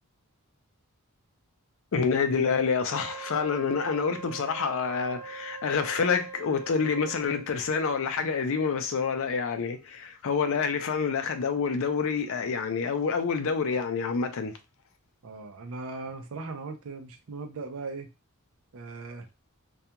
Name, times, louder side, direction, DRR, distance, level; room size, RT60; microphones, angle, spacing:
voice 1, 1.9-14.5, left 5 dB, 65° left, 0.5 m, -27 dB
Wind instrument woodwind instrument, 2.9-7.5, right 5 dB, 10° left, 0.8 m, -42 dB
voice 2, 15.2-18.1 18.7-19.3, right 3 dB, 70° right, 0.5 m, -38 dB
2.3 x 2.2 x 2.8 m
head